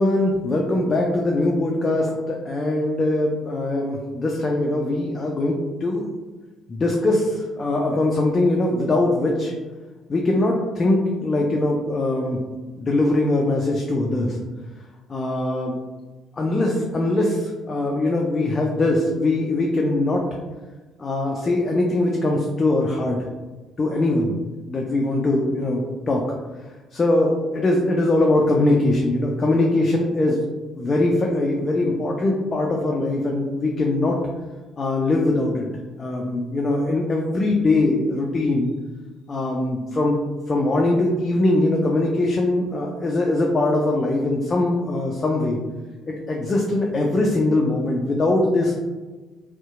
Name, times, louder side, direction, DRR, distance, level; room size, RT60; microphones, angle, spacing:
voice 1, 0.0-6.1 6.7-9.5 10.1-12.4 12.8-14.4 15.1-15.8 16.4-20.2 21.0-23.2 23.8-24.3 24.7-25.8 26.1-26.2 26.9-30.4 30.8-34.2 34.8-35.7 36.0-38.7 39.3-40.2 40.5-45.6 46.1-48.8, left 2 dB, 35° left, 0 dB, 0.4 m, -21 dB
2.7 x 2.1 x 2.4 m, 1.2 s
figure-of-eight pair, 50°, 0 cm